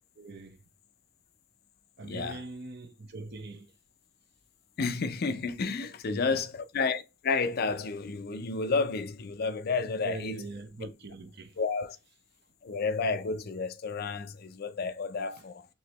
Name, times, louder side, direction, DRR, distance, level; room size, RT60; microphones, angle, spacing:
voice 1, 0.2-0.6 2.0-3.7 5.8-6.4 10.0-11.6 15.4-15.5, right 3 dB, 60° right, 0.8 m, -42 dB
voice 2, 2.0-2.4 4.8-10.4 11.6-12.0 12.6-15.7, left 4 dB, 55° left, 0.4 m, -31 dB
4.7 x 2.9 x 3.0 m
head